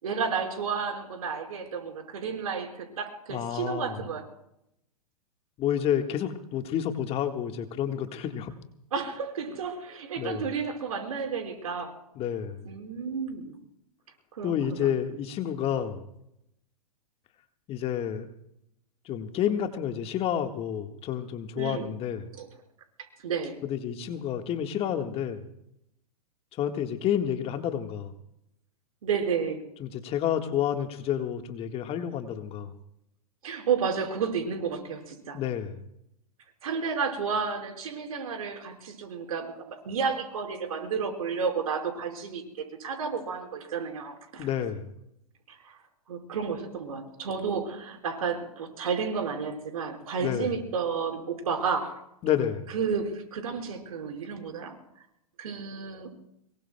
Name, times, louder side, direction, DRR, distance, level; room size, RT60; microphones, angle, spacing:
voice 1, 0.0-4.2 8.9-11.9 12.6-13.5 14.3-14.5 14.8-14.9 21.6-21.8 22.3-22.5 23.2-23.6 29.0-29.6 33.4-35.4 36.6-44.5 45.5-45.8 46.1-52.0 52.7-54.7 55.4-56.1, right 6 dB, 70° right, 3 dB, 4.6 m, -31 dB
voice 2, 3.3-4.0 5.6-8.5 10.2-10.5 12.2-12.7 14.4-16.0 17.7-18.3 19.0-22.3 23.6-25.4 26.6-28.1 29.8-32.7 35.3-35.8 44.4-44.9 50.2-50.5 52.2-52.7, left 9 dB, 30° left, 6 dB, 1.5 m, -29 dB
24.5 x 22.0 x 2.2 m, 0.78 s
hypercardioid pair, 110°, 19 cm